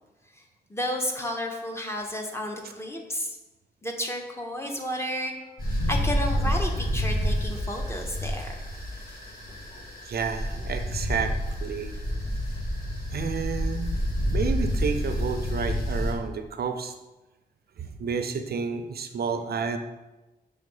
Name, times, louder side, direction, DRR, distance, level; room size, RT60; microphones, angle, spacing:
voice 1, 0.7-3.3 3.8-5.3 5.9-8.5, left 1 dB, 15° left, 2 dB, 0.7 m, -32 dB
sound 1, 5.6-16.1, equal, 60° left, 1.9 m, -28 dB
voice 2, 10.0-11.9 13.1-14.0 14.3-16.9 17.8-19.8, right 5 dB, 65° right, 7 dB, 0.5 m, -30 dB
6.2 x 3.4 x 5.4 m, 1.1 s
wide cardioid pair, 180°, 17 cm